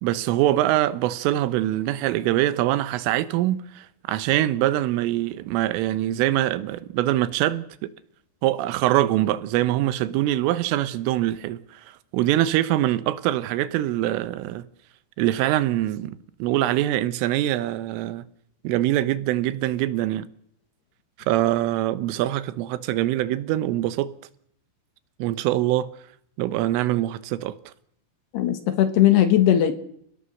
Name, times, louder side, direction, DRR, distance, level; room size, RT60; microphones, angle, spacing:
voice 1, 0.0-7.9 8.4-14.7 15.2-18.3 18.7-20.3 21.3-24.1 25.2-25.9 26.4-27.6, right 14 dB, 90° right, 3.6 m, -24 dB
voice 2, 28.3-29.7, left 11 dB, 65° left, 3.3 m, -18 dB
29.5 x 17.5 x 6.5 m
omnidirectional pair, 5.6 m